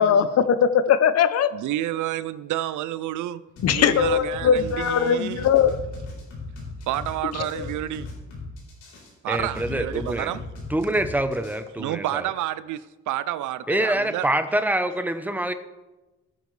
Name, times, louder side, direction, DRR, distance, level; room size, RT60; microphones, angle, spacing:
voice 1, 0.0-1.7 3.6-5.8 7.4-7.6, left 8 dB, 55° left, 0.7 m, -20 dB
voice 2, 1.5-3.4 3.7-5.5 6.9-8.1 9.2-10.4 11.8-14.3, right 13 dB, 75° right, 0.5 m, -29 dB
sound 1, 3.6-11.6, left 3 dB, 85° left, 4.3 m, -37 dB
voice 3, 9.3-10.3 10.7-12.2 13.7-15.5, right 1 dB, 5° right, 0.8 m, -25 dB
17.5 x 7.0 x 3.3 m
cardioid pair, 90°, 30 cm